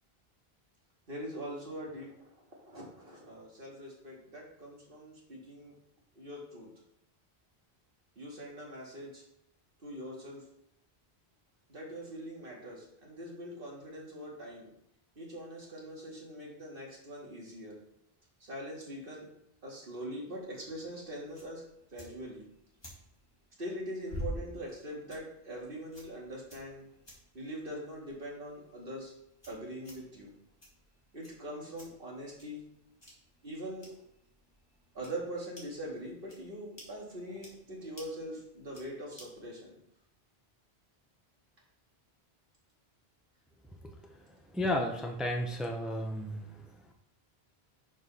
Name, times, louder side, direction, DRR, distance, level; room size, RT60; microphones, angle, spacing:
voice 1, 1.1-2.2 2.6-5.8 6.2-6.7 8.2-9.2 9.8-10.4 11.7-14.7 15.2-17.7 18.4-19.3 19.6-22.4 23.6-26.9 27.3-29.1 29.5-30.3 31.1-32.6 33.4-34.0 34.9-39.7, equal, 60° right, -3 dB, 2.4 m, -42 dB
sound 1, 20.3-39.5, equal, 25° left, 2.4 m, -50 dB
voice 2, 44.5-46.5, left 1 dB, ahead, 2 dB, 0.8 m, -32 dB
6.3 x 5.1 x 5.5 m, 0.77 s
omnidirectional pair, 1.0 m